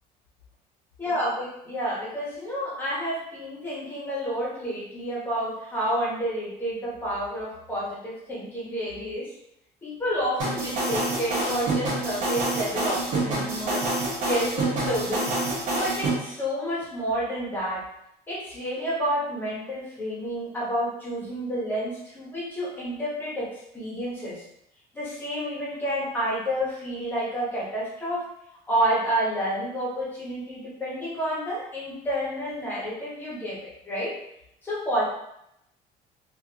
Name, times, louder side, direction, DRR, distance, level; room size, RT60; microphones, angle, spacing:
voice 1, 1.0-9.3 9.8-13.9 14.2-15.4 15.8-17.8 18.3-24.4 24.9-28.3 28.7-34.1 34.6-35.1, equal, 10° left, -7 dB, 1.0 m, -29 dB
sound 1, 10.4-16.1, right 2 dB, 55° right, 1.1 m, -27 dB
3.1 x 2.5 x 2.9 m, 0.78 s
cardioid pair, 175°, 16 cm